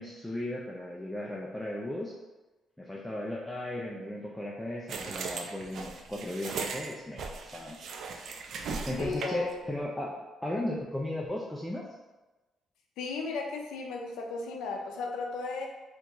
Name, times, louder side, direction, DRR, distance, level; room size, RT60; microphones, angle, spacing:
voice 1, 0.0-2.1 2.8-7.8 8.1-8.4 8.8-11.8, left 1 dB, 5° left, -3 dB, 0.4 m, -36 dB
sound 1, 4.9-9.5, right 4 dB, 65° right, 0.4 m, -38 dB
voice 2, 9.0-9.6 13.0-15.7, left 4 dB, 90° left, 1 dB, 0.4 m, -35 dB
3.4 x 2.5 x 2.9 m, 1.1 s
cardioid pair, 90°, 0 cm